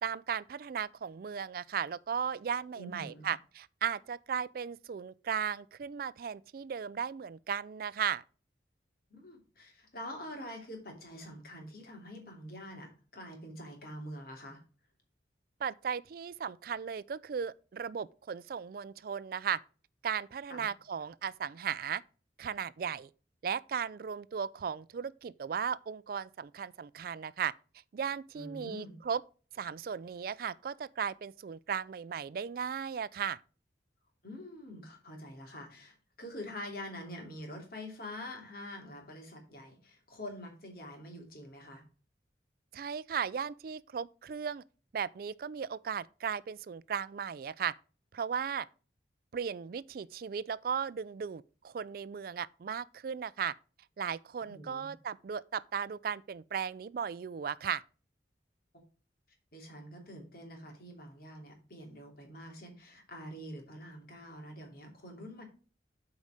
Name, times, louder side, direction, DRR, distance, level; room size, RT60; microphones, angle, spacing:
voice 1, 0.0-8.2 15.6-19.6 20.0-22.0 22.4-23.1 23.4-27.5 27.9-29.2 29.5-33.4 42.7-44.6 44.9-47.7 48.1-48.7 49.3-53.5 54.0-57.8, right 7 dB, 55° right, 0.3 m, -36 dB
voice 2, 2.8-3.3 9.1-14.6 20.5-20.7 28.3-29.0 34.2-41.8 54.4-54.9 59.5-65.4, left 1 dB, 55° left, 2.9 m, -46 dB
8.2 x 4.8 x 5.0 m
head